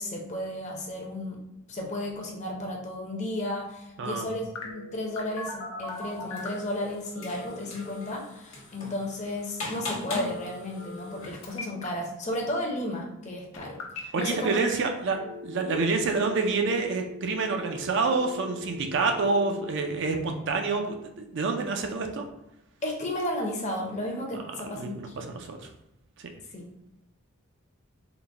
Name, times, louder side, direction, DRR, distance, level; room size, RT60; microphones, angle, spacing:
voice 1, 0.0-1.4 1.7-14.6 15.7-15.8 22.8-25.3 26.5-26.7, left 1 dB, 30° left, 0 dB, 0.6 m, -33 dB
voice 2, 4.0-4.3 14.1-22.2 24.6-25.7, right 4 dB, 55° right, 4 dB, 0.4 m, -28 dB
Telephone, 4.5-6.6 7.1-8.2 10.2-11.2 11.4-11.9 13.5-14.2 14.6-14.7 15.1-20.1, left 3 dB, 85° left, 0.7 m, -41 dB
sound 1, 5.9-11.6, left 2 dB, 65° left, 1.2 m, -40 dB
3.9 x 2.1 x 3.3 m, 0.88 s
head